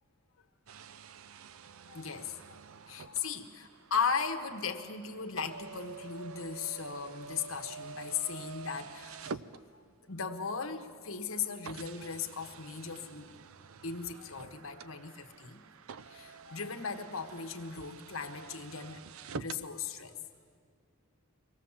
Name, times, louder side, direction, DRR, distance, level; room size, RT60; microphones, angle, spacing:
sound 1, 0.7-10.1 10.9-11.0 11.6-19.7, right 5 dB, 80° right, 0.5 m, -48 dB
voice 1, 1.9-2.6 2.9-9.4 9.7-13.3 13.8-15.6 16.0-19.1 19.3-20.2, left 6 dB, 75° left, 6 dB, 1.3 m, -37 dB
24.0 x 18.0 x 7.4 m, 2.1 s
head